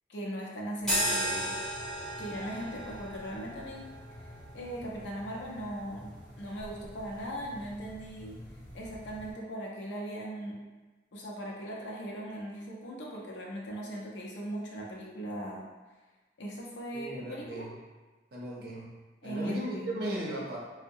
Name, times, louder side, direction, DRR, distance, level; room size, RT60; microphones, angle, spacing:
voice 1, 0.1-1.6 2.2-3.9 4.2-8.4 8.7-10.6 11.1-15.7 16.4-17.7 19.2-20.0, right 1 dB, 80° left, -2 dB, 0.6 m, -39 dB
sound 1, 0.8-9.3, right 1 dB, 5° left, 1.0 m, -37 dB
voice 2, 16.9-17.8 18.3-19.0 19.2-20.6, right 1 dB, 55° right, -3 dB, 0.5 m, -36 dB
2.6 x 2.1 x 2.6 m, 1.2 s
head